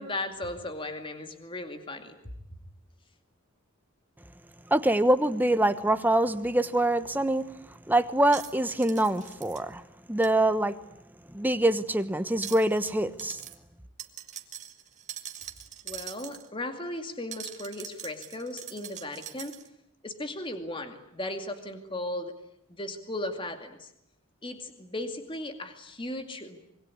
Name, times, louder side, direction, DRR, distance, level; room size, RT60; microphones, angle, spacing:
voice 1, 0.0-2.2 15.8-19.6 20.0-22.3 22.7-23.9 24.4-26.6, left 1 dB, 25° left, 2.3 m, -36 dB
voice 2, 4.7-7.5 7.9-9.8 10.1-10.7 11.3-13.4, right 1 dB, 10° right, 1.1 m, -24 dB
sound 1, 7.1-7.2 8.2-9.6 10.2-10.3 12.3-12.9 13.2-13.6 14.0-16.5 17.3-19.7, right 10 dB, 35° right, 2.0 m, -42 dB
26.0 x 23.0 x 9.8 m
head